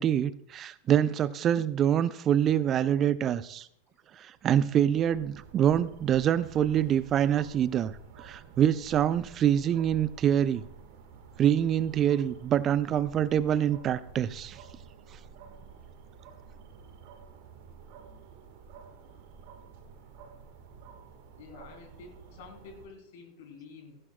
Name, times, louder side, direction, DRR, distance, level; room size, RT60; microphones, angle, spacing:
voice 1, 0.0-3.7 4.2-7.9 8.2-10.6 11.4-14.6, right 10 dB, 30° right, 18 dB, 0.5 m, -25 dB
sound 1, 4.3-22.9, right 6 dB, 45° right, 1.7 m, -51 dB
voice 2, 21.4-24.0, left 4 dB, 50° left, 3 dB, 3.3 m, -49 dB
16.5 x 15.5 x 2.4 m, 0.70 s
figure-of-eight pair, 90°, 0 cm